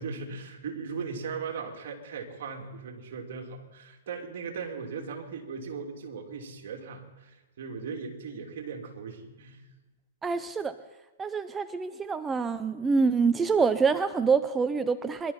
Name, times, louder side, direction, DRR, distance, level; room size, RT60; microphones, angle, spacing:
voice 1, 0.0-9.6, right 5 dB, 60° right, 2 dB, 2.9 m, -38 dB
voice 2, 10.2-10.7 11.2-15.3, right 5 dB, 15° right, 11 dB, 0.5 m, -26 dB
24.5 x 12.0 x 4.3 m, 1.1 s
hypercardioid pair, 130°, 0 cm